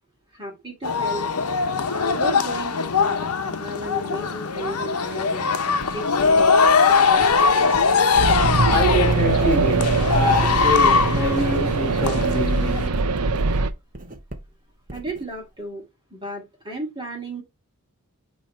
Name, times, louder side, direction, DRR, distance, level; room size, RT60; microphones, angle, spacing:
voice 1, 0.3-1.3 1.9-5.5 5.9-7.3 14.9-15.8 16.1-17.4, right 1 dB, 20° right, 2.3 m, -34 dB
sound 1, 0.8-12.9, left 5 dB, 80° left, 0.9 m, -21 dB
Writing, 5.8-10.7 11.0-15.6, right 1 dB, 40° right, 1.1 m, -40 dB
sound 2, 8.2-13.7, right 3 dB, 85° right, 0.7 m, -22 dB
voice 2, 8.7-13.3, equal, 10° left, 2.4 m, -25 dB
8.9 x 3.2 x 4.3 m
head